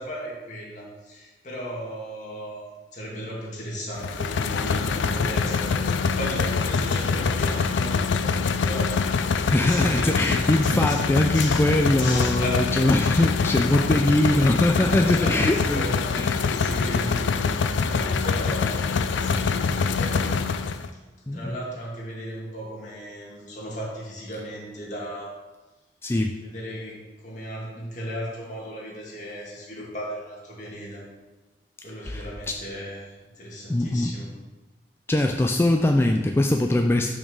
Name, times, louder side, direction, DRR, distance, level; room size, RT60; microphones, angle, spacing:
voice 1, 0.0-12.7 15.0-17.2 17.9-20.4 21.3-25.4 26.4-31.0 31.8-34.3, equal, 40° left, -5 dB, 1.9 m, -36 dB
sound 1, 4.0-20.9, left 5 dB, 85° left, 0.4 m, -24 dB
voice 2, 9.5-15.9 16.2-16.5 21.3-21.6 26.0-26.3 32.0-32.6 33.7-34.1 35.1-37.1, left 1 dB, 15° left, 3 dB, 0.3 m, -22 dB
6.0 x 4.4 x 6.2 m, 1.2 s
head